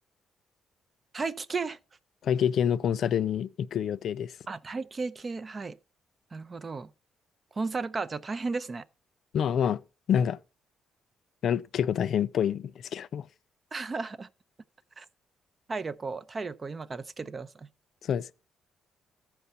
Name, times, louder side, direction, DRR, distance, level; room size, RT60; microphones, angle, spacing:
voice 1, 1.1-1.8 4.5-5.8 6.3-6.9 7.6-8.8 13.7-14.3 15.0-15.1 15.7-17.7, right 4 dB, 35° right, 0.5 m, -34 dB
voice 2, 2.2-4.3 9.3-9.8 10.1-10.4 11.4-13.3 18.0-18.3, left 8 dB, 65° left, 0.4 m, -27 dB
13.5 x 4.6 x 5.5 m
cardioid pair, 90°, 0 cm